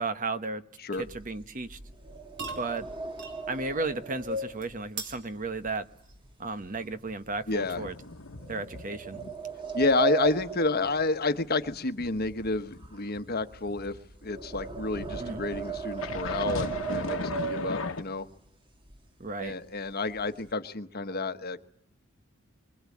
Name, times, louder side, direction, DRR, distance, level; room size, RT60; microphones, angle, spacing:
voice 1, 0.0-0.6 1.0-1.8 2.6-2.9 3.5-5.9 6.4-7.9 8.5-9.2 15.2-15.4 19.2-19.5, right 3 dB, 40° right, 10 dB, 1.2 m, -34 dB
sound 1, 1.0-6.3 6.6-7.0 7.5-7.6 8.4-11.7 12.0-18.3 18.9-19.0 19.3-19.5 19.8-20.5, right 5 dB, 25° right, 1.8 m, -37 dB
sound 2, 2.0-8.4, right 4 dB, 55° right, 4.5 m, -46 dB
sound 3, 7.5-9.4 9.7-10.0 10.4-14.0 14.9-18.0, left 3 dB, 70° left, 1.4 m, -38 dB
voice 2, 7.5-7.8 9.7-14.0 14.2-18.3 19.4-21.6, left 3 dB, 45° left, 9 dB, 1.3 m, -30 dB
27.5 x 24.0 x 8.6 m, 0.70 s
head